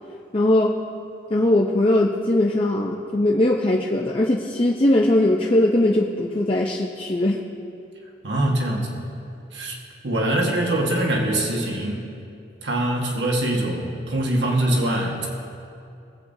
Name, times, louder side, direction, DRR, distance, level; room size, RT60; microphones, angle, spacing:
voice 1, 0.3-0.8 1.3-7.4, left 1 dB, 30° left, -2 dB, 0.6 m, -20 dB
voice 2, 8.2-8.9 9.5-9.7 10.0-12.0 12.6-15.3, right 1 dB, 80° right, -1 dB, 1.6 m, -23 dB
21.0 x 8.2 x 2.7 m, 2.5 s
head